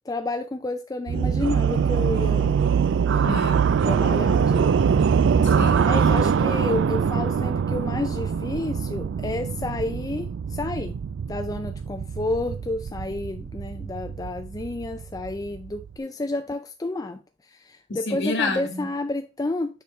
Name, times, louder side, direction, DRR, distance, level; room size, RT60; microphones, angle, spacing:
voice 1, 0.1-2.6 3.9-4.8 5.9-10.9 11.3-17.2 17.6-19.8, left 2 dB, 20° left, 0.4 m, -30 dB
sound 1, 1.1-16.0, right 6 dB, 65° right, 0.3 m, -23 dB
voice 2, 3.2-3.8 5.4-5.9 17.9-18.9, left 2 dB, 60° left, 1.5 m, -29 dB
7.0 x 5.0 x 3.1 m
head